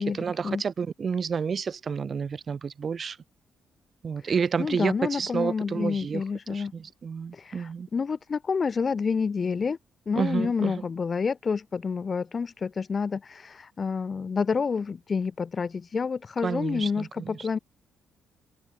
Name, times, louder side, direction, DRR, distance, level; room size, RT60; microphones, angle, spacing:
voice 1, 0.0-3.2 4.0-6.2 6.5-7.9 10.1-10.8 16.4-17.5, right 6 dB, 45° right, 0.6 m, -30 dB
voice 2, 4.6-6.7 7.3-9.8 10.1-17.6, left 5 dB, 40° left, 1.6 m, -28 dB
cardioid pair, 90°, 0 cm